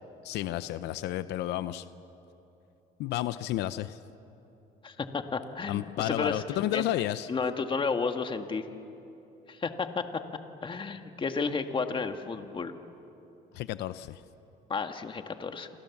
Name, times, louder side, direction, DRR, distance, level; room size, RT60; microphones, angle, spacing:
voice 1, 0.2-1.9 3.0-4.0 5.7-7.3 13.5-14.2, left 14 dB, 85° left, 13 dB, 0.7 m, -31 dB
voice 2, 4.8-6.4 6.7-6.8 7.3-8.6 9.5-10.0 10.6-12.8 14.7-15.7, left 4 dB, 30° left, 6 dB, 1.7 m, -32 dB
29.0 x 26.0 x 7.2 m, 2.9 s
cardioid pair, 110°, 17 cm